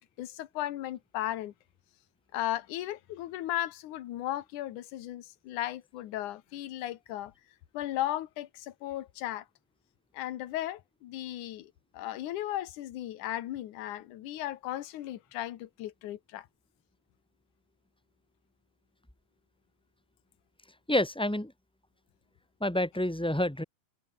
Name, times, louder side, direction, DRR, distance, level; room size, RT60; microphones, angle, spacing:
voice 1, 0.0-1.5 2.3-7.3 7.7-9.4 10.1-16.5, left 13 dB, 75° left, 2.7 m, -36 dB
voice 2, 20.9-21.5 22.6-23.6, left 1 dB, 10° left, 0.3 m, -28 dB
omnidirectional pair, 3.6 m